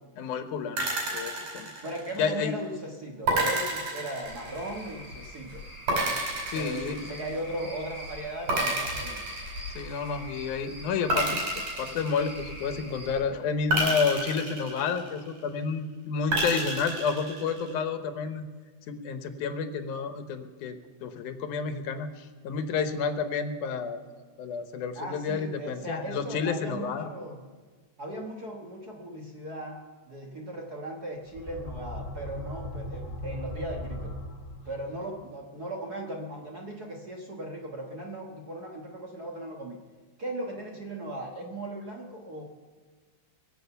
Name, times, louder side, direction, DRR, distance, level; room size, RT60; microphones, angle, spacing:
voice 1, 0.2-1.7 2.2-2.6 6.5-7.0 9.8-11.4 11.8-18.4 18.9-24.0 24.4-27.1, left 5 dB, 90° left, 8 dB, 2.5 m, -30 dB
sound 1, 0.8-2.4 3.3-4.9 5.9-7.6 8.5-10.1 11.1-12.8 13.7-15.4 16.3-17.7, right 2 dB, 90° right, 6.2 m, -30 dB
voice 2, 1.8-5.6 6.5-9.2 24.9-27.4 28.0-34.1 34.6-39.8 40.2-42.5, right 1 dB, 45° right, 0 dB, 1.4 m, -38 dB
Cricket / Frog, 4.2-13.1, left 1 dB, 70° right, 7.6 m, -43 dB
sound 2, 31.2-35.0, left 1 dB, 60° left, 0.7 m, -38 dB
22.5 x 7.8 x 6.9 m, 1.5 s
omnidirectional pair, 3.4 m